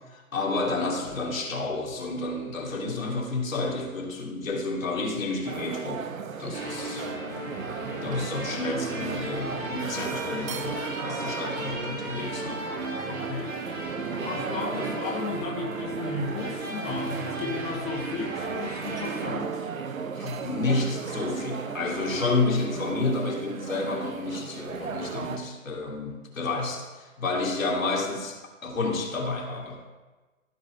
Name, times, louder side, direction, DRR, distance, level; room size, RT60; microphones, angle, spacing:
voice 1, 0.1-6.0 6.4-7.1 8.0-12.6 20.1-29.8, left 3 dB, 70° left, 0 dB, 2.2 m, -30 dB
sound 1, 5.4-25.4, right 6 dB, 70° right, 0.9 m, -36 dB
sound 2, 6.5-19.3, right 2 dB, 20° right, 1.6 m, -36 dB
voice 2, 13.1-13.6 14.1-19.7, left 4 dB, 15° left, -2 dB, 1.3 m, -34 dB
15.0 x 5.3 x 3.6 m, 1.2 s
figure-of-eight pair, 120°, 42 cm